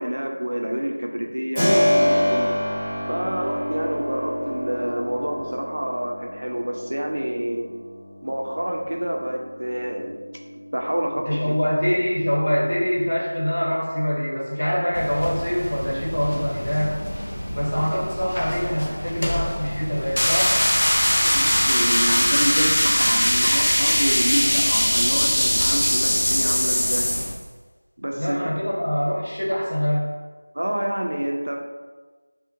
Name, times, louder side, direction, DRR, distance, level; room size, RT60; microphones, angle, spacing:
voice 1, 0.0-2.6 3.1-7.7 8.2-10.2 10.7-11.6 21.2-27.1 28.0-28.4 30.5-31.6, right 1 dB, 65° right, 2 dB, 0.4 m, -27 dB
Keyboard (musical), 1.6-12.2, equal, ahead, 0.4 m, -27 dB
voice 2, 11.3-17.0 17.5-20.6 28.1-30.1, equal, 70° left, -6 dB, 1.1 m, -24 dB
sound 1, 14.9-27.4, equal, 85° left, 0.4 m, -32 dB
sound 2, 20.2-27.3, equal, 55° left, 0.7 m, -20 dB
2.5 x 2.1 x 2.8 m, 1.3 s
figure-of-eight pair, 175°, 0 cm